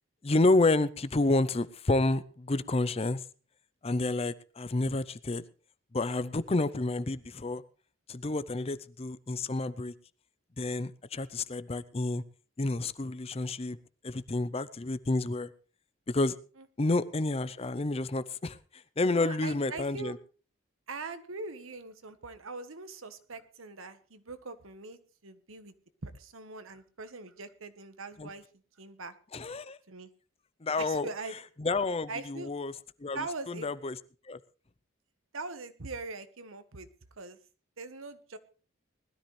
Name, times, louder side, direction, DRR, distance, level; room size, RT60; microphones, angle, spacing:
voice 1, 0.2-3.2 3.8-5.4 5.9-7.6 8.1-9.9 10.6-12.2 12.6-13.8 14.0-15.5 16.1-16.4 16.8-20.2 28.2-28.3 29.3-29.8 30.6-31.1 31.6-32.7 33.0-34.0 34.3-34.4, left 2 dB, 30° left, 15 dB, 0.5 m, -29 dB
voice 2, 16.6-16.9 19.1-20.2 20.9-25.7 26.0-28.4 28.8-29.1 29.9-30.1 30.8-31.3 32.1-32.5 33.1-33.7 35.3-36.9 37.2-37.4 37.8-38.4, right 3 dB, 80° right, 11 dB, 1.3 m, -42 dB
20.0 x 13.0 x 3.3 m, 0.37 s
head